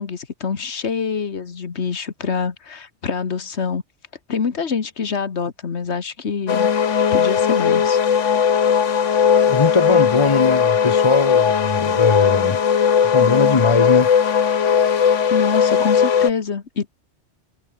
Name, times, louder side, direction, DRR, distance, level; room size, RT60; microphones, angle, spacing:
voice 1, 0.0-3.8 4.3-6.7 7.1-8.5 15.3-16.9, left 6 dB, 65° left, 1.7 m, -26 dB
sound 1, 6.5-16.3, left 7 dB, 85° left, 1.6 m, -17 dB
voice 2, 9.4-12.6 13.1-14.1, left 4 dB, 30° left, 0.8 m, -20 dB
omnidirectional pair, 1.2 m